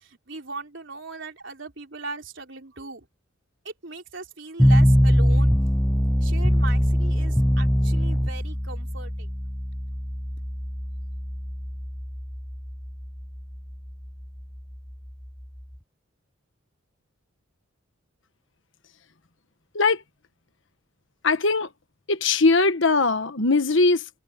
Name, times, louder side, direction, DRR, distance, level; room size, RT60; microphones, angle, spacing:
voice 1, 0.0-3.1 3.6-5.5 6.2-9.3, right 3 dB, 65° right, 3.9 m, -38 dB
sound 1, 4.6-15.8, equal, 5° left, 0.5 m, -23 dB
voice 2, 21.2-21.7 22.1-24.1, left 3 dB, 65° left, 1.3 m, -20 dB
head